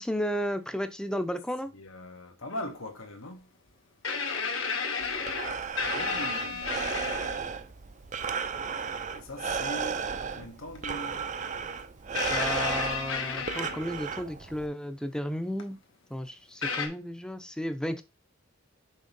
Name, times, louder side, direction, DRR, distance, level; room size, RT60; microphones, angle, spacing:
voice 1, 0.0-1.7 12.3-15.8 16.1-18.0, equal, 5° left, 0.6 m, -33 dB
voice 2, 1.7-3.5 5.9-6.7 9.1-11.3, left 1 dB, 85° left, 1.8 m, -41 dB
sound 1, 2.5-2.6 4.0-7.5 8.8-8.9 10.8-10.9 12.1-14.2 15.6-15.7 16.6-16.9, left 5 dB, 70° left, 1.6 m, -32 dB
Breathing, 5.0-14.7, right 6 dB, 35° right, 0.5 m, -34 dB
6.5 x 3.1 x 5.4 m
head